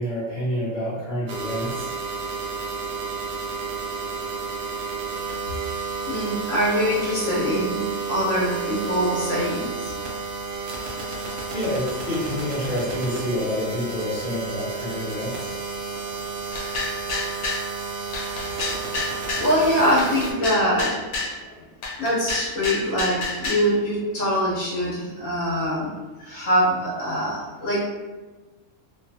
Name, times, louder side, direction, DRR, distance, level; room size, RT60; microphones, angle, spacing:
voice 1, 0.0-1.9 11.5-15.5 26.9-27.1, equal, 40° left, -8 dB, 0.9 m, -28 dB
sound 1, 1.3-20.3, right 4 dB, 65° right, 0.9 m, -31 dB
voice 2, 6.1-9.7 18.8-18.9 19.4-21.0 21.4-21.5 22.0-25.9 26.2-27.8, equal, 70° left, -7 dB, 1.3 m, -23 dB
sound 2, 16.5-17.7 18.1-19.5 20.0-21.4 21.8-23.7, left 3 dB, 85° left, 1.1 m, -29 dB
3.0 x 2.3 x 2.7 m, 1.2 s
omnidirectional pair, 1.5 m